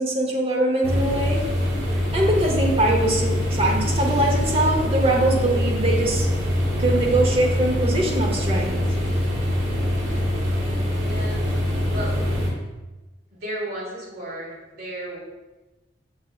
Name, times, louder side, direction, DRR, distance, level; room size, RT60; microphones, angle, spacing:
voice 1, 0.0-1.4 2.1-6.3 6.8-8.8, right 1 dB, 30° right, 0 dB, 0.7 m, -22 dB
sound 1, 0.8-12.5, left 1 dB, 80° right, 1.1 m, -23 dB
voice 2, 11.0-11.5 11.9-12.2 13.3-15.2, right 1 dB, 55° right, -4 dB, 1.3 m, -33 dB
6.4 x 3.3 x 2.4 m, 1.1 s
head